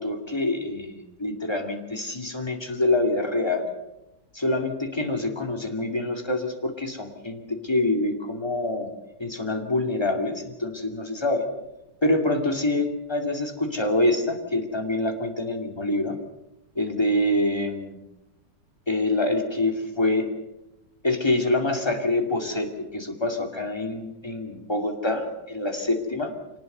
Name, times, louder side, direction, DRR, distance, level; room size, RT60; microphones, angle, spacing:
voice 1, 0.0-3.7 4.3-8.9 9.2-11.4 12.0-16.2 16.8-18.0 18.9-20.3 21.0-26.3, left 2 dB, 15° left, 5 dB, 2.3 m, -26 dB
24.5 x 19.0 x 6.7 m, 0.94 s
omnidirectional pair, 1.9 m